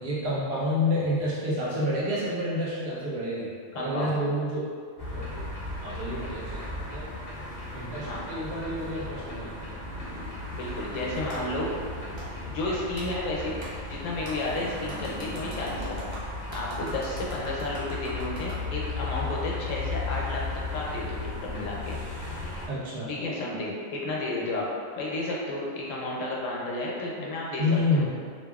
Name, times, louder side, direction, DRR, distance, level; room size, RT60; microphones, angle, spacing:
voice 1, 0.0-4.7 5.1-5.5 5.8-7.1 7.7-9.6 22.7-23.1 27.6-28.1, left 1 dB, 60° right, -7 dB, 0.9 m, -29 dB
voice 2, 3.7-4.2 8.0-8.2 10.1-10.3 10.5-11.7 12.5-13.6 13.9-16.0 16.5-20.4 20.7-22.0 23.0-24.7 25.0-27.6 27.9-28.1, left 2 dB, 80° left, -4 dB, 1.0 m, -32 dB
sound 1, 5.0-22.7, left 3 dB, 45° left, 0.5 m, -36 dB
Clapping, 11.3-11.4 12.2-12.3 13.0-13.1 13.6-13.7 14.2-14.4 14.9-18.6, right 1 dB, 45° right, 0.3 m, -41 dB
2.8 x 2.5 x 2.3 m, 2.1 s
omnidirectional pair, 1.3 m